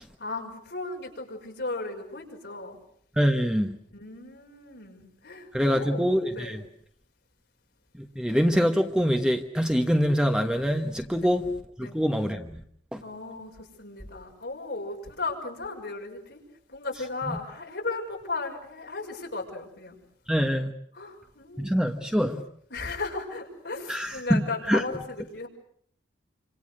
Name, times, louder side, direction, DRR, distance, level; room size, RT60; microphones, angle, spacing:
voice 1, 0.2-2.8 3.9-6.5 11.2-11.3 11.8-12.0 13.0-16.4 16.7-20.0 20.9-21.8 22.7-25.5, left 3 dB, 65° left, 1 dB, 6.3 m, -36 dB
voice 2, 3.2-3.8 5.5-6.6 8.2-11.4 11.8-12.5 12.9-13.0 17.3-17.4 20.3-20.7 21.6-22.4 23.9-24.4 24.7-24.8, equal, 5° right, 4 dB, 1.3 m, -24 dB
28.0 x 26.0 x 6.5 m, 0.63 s
head